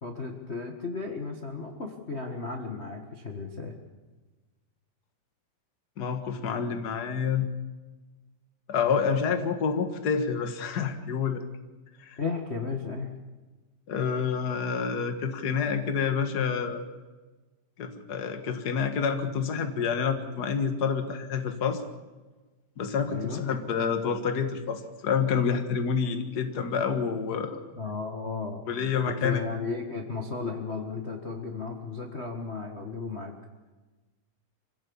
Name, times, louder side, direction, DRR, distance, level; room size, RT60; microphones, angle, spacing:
voice 1, 0.0-3.7 12.2-13.1 23.1-23.5 27.7-28.7 29.2-33.3, left 4 dB, 85° left, 2 dB, 0.5 m, -34 dB
voice 2, 6.0-7.5 8.7-11.4 12.0-12.2 13.9-16.9 17.8-21.8 22.8-27.6 28.7-29.4, left 6 dB, 45° left, 7 dB, 1.2 m, -28 dB
25.0 x 16.5 x 7.1 m, 1.2 s
omnidirectional pair, 4.2 m